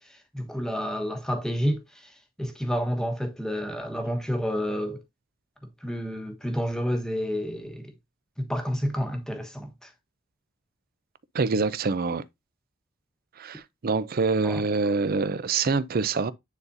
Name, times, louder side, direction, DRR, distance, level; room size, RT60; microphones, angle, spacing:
voice 1, 0.0-2.1 2.4-5.0 5.8-7.9 8.4-9.9 14.4-14.6, equal, 5° left, 1.1 m, -30 dB
voice 2, 11.3-12.2 13.4-16.3, right 4 dB, 45° right, 0.5 m, -25 dB
9.6 x 4.1 x 2.6 m
head